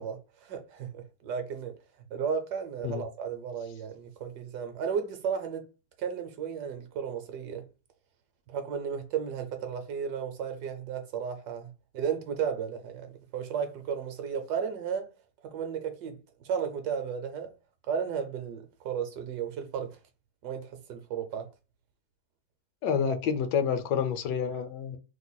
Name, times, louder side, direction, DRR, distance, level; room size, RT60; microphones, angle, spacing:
voice 1, 0.0-1.7 2.1-5.7 6.0-7.7 8.5-15.1 15.4-17.5 17.9-20.0 20.4-21.5, right 7 dB, 70° right, 1.1 m, -34 dB
voice 2, 22.8-25.0, left 7 dB, 75° left, 1.2 m, -28 dB
3.1 x 2.2 x 3.8 m
omnidirectional pair, 2.0 m